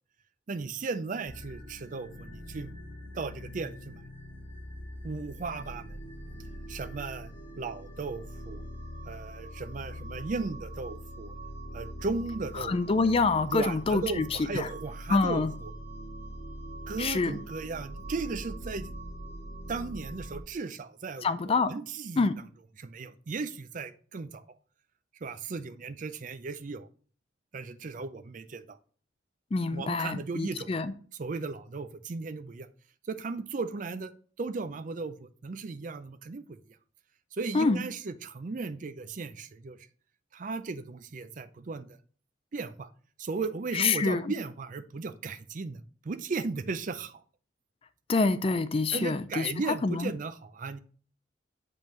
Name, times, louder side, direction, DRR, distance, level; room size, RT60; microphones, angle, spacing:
voice 1, 0.5-2.7 3.1-4.0 5.0-6.0 6.7-7.3 7.6-8.6 9.1-11.3 11.7-13.1 13.5-15.7 16.9-18.9 19.7-22.3 22.8-24.4 25.2-26.9 27.5-28.8 29.7-30.8 31.1-32.7 33.1-34.1 34.4-36.6 37.3-39.8 40.3-42.0 42.5-42.9 43.2-47.2 48.9-50.8, right 4 dB, 40° right, 12 dB, 0.4 m, -36 dB
sound 1, 1.3-20.4, equal, 85° left, 2.5 m, -43 dB
voice 2, 12.7-14.3 14.5-14.7 15.1-15.5 17.0-17.4 21.2-21.7 22.2-22.3 29.5-30.9 37.5-37.8 43.7-44.2 48.1-49.5 49.8-50.1, left 4 dB, 30° left, 12 dB, 0.3 m, -26 dB
7.2 x 5.3 x 3.1 m, 0.44 s
head